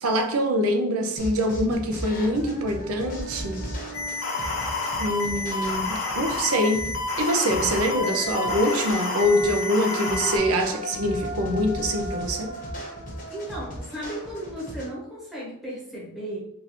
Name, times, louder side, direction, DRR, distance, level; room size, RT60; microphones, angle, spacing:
voice 1, 0.0-3.6 5.0-6.9 7.2-12.5, equal, 80° right, 5 dB, 0.6 m, -24 dB
sound 1, 1.2-14.9, equal, 40° left, 0.9 m, -38 dB
Human voice, 1.7-1.8 2.2-5.8 7.5-14.8, equal, 50° right, 1.1 m, -39 dB
sound 2, 3.9-10.4, left 3 dB, 70° left, 0.9 m, -29 dB
voice 2, 13.3-16.4, right 1 dB, ahead, -7 dB, 0.9 m, -35 dB
3.7 x 2.5 x 2.9 m, 0.83 s
head